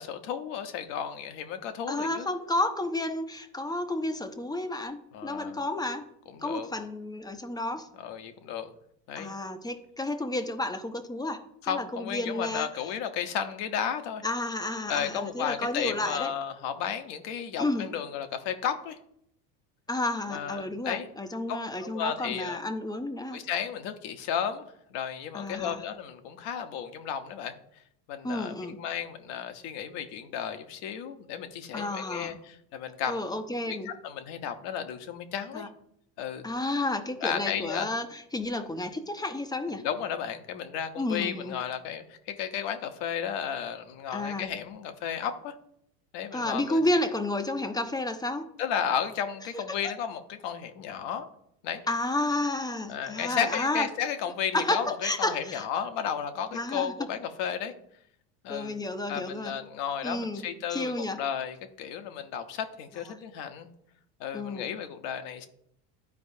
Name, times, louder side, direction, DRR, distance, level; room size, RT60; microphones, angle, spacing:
voice 1, 0.0-2.3 5.1-5.6 6.3-6.7 8.0-8.7 9.1-9.3 11.6-14.2 14.9-19.0 20.3-21.1 21.5-22.6 23.3-24.6 24.9-27.5 28.1-33.4 33.6-35.7 36.2-36.4 37.2-37.9 39.7-45.5 46.1-46.8 48.6-51.3 51.6-51.8 52.9-57.7 58.4-58.7 59.1-63.7 64.2-65.5, left 8 dB, 60° left, 8 dB, 1.1 m, -33 dB
voice 2, 1.9-6.1 6.4-7.9 9.2-13.0 14.2-16.3 17.6-17.9 19.9-23.4 25.3-25.8 28.2-28.8 31.7-32.4 33.1-33.9 35.5-35.7 36.4-39.9 41.0-41.6 44.1-44.5 46.3-48.5 49.5-49.6 51.9-53.9 54.5-55.7 56.5-56.9 58.5-59.5 60.0-61.2 64.3-64.7, left 2 dB, 10° left, 7 dB, 0.7 m, -31 dB
12.0 x 4.6 x 2.7 m, 0.73 s
hypercardioid pair, 85°, 49 cm